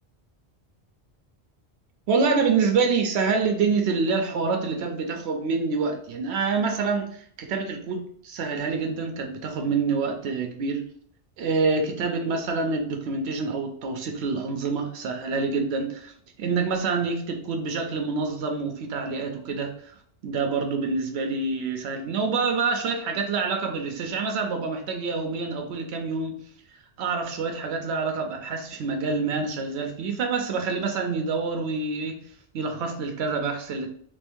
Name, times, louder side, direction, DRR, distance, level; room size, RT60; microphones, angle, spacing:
voice 1, 2.1-10.8 11.4-16.1 16.4-19.9 20.2-26.3 27.0-32.2 32.5-33.9, right 4 dB, 85° right, 4 dB, 0.9 m, -26 dB
3.6 x 2.6 x 3.5 m, 0.63 s
omnidirectional pair, 1.1 m